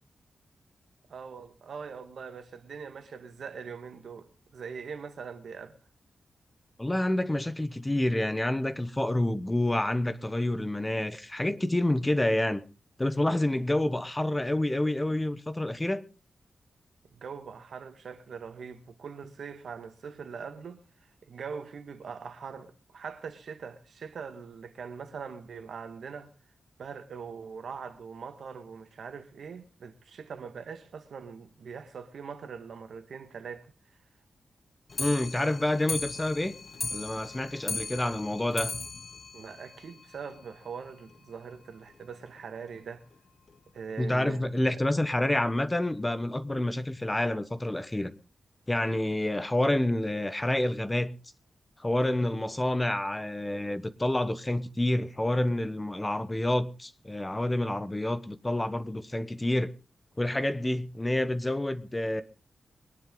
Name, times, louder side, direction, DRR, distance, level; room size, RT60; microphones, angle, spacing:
voice 1, 1.1-5.8 17.1-26.3 26.8-33.7 39.3-43.1 43.7-44.8, right 6 dB, 75° right, 1.8 m, -42 dB
voice 2, 6.8-12.6 13.0-16.0 35.0-36.5 36.9-38.7 44.0-48.1 48.7-51.1 51.8-59.7 60.2-62.2, left 1 dB, 15° left, 1.1 m, -28 dB
Clock, 34.9-40.4 40.7-40.8 41.1-41.2 41.5-41.6 41.9-42.0 42.7-42.8 43.5-43.6 44.3-44.4, left 3 dB, 45° left, 1.1 m, -37 dB
22.5 x 10.5 x 3.9 m
wide cardioid pair, 110°, 0 cm